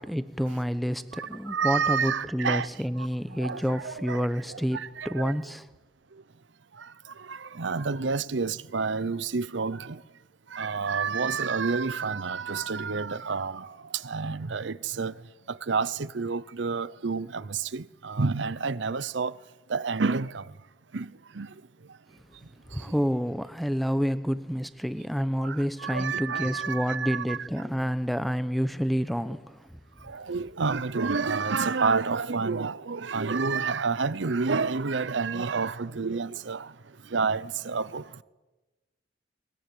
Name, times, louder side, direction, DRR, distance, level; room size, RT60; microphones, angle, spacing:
voice 1, 0.0-5.7 22.7-29.6, equal, ahead, 0.9 m, -29 dB
voice 2, 1.1-2.7 3.0-5.4 6.8-10.0 10.5-15.2 15.5-19.4 19.7-20.5 20.9-21.5 22.7-22.9 25.4-27.7 30.0-36.7 37.0-38.2, right 4 dB, 75° right, 0.7 m, -29 dB
21.5 x 21.5 x 9.2 m
head